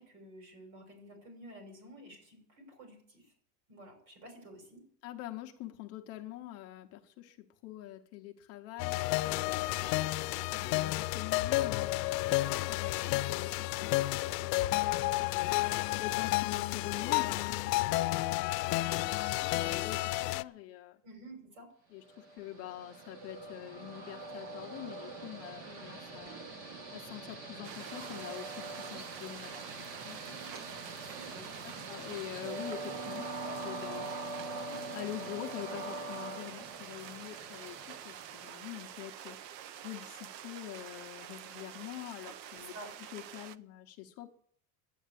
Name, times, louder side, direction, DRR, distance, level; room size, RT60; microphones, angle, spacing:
voice 1, 0.0-3.3 3.7-4.8 21.0-21.7 25.6-25.8 30.9-31.9 42.5-42.9, right 1 dB, 60° right, 3 dB, 6.3 m, -51 dB
voice 2, 5.0-9.7 10.3-15.6 15.9-21.0 21.9-26.4 26.9-29.6 29.9-30.6 31.3-34.1 34.7-39.4 39.7-42.7 43.1-44.3, left 14 dB, 30° left, 3 dB, 0.8 m, -45 dB
sound 1, 8.8-20.4, left 18 dB, 80° left, 0.7 m, -31 dB
Train, 22.1-38.8, right 2 dB, 40° right, 1.6 m, -43 dB
sound 2, 27.6-43.6, right 10 dB, 80° right, 0.8 m, -47 dB
11.0 x 9.2 x 8.4 m, 0.65 s
supercardioid pair, 175°, 49 cm